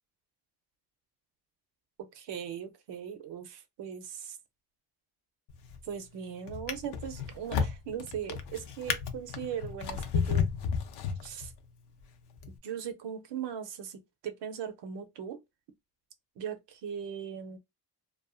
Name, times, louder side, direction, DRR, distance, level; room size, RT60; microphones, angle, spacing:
voice 1, 2.1-4.4 5.8-10.5 11.2-11.5 12.5-15.4 16.4-17.6, right 8 dB, 75° right, 0.7 m, -39 dB
Drawer open or close, 5.5-5.9 6.5-11.7 12.4-12.5, left 6 dB, 70° left, 0.6 m, -33 dB
2.5 x 2.3 x 2.3 m
cardioid pair, 95°, 42 cm